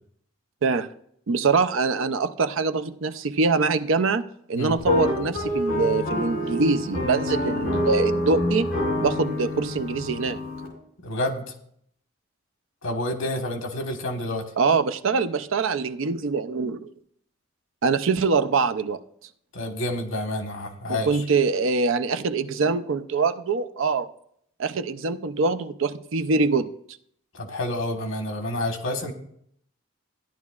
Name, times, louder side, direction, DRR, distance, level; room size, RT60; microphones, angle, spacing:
voice 1, 1.3-8.7 9.0-10.4 14.6-16.9 17.8-19.0 20.9-24.1 24.6-26.7, right 4 dB, 75° right, 0.5 m, -24 dB
sound 1, 4.8-10.7, left 1 dB, 45° left, 3.2 m, -27 dB
voice 2, 11.0-11.5 12.8-14.4 19.5-21.2 27.3-29.1, left 1 dB, 75° left, 1.3 m, -29 dB
14.0 x 10.5 x 2.4 m
head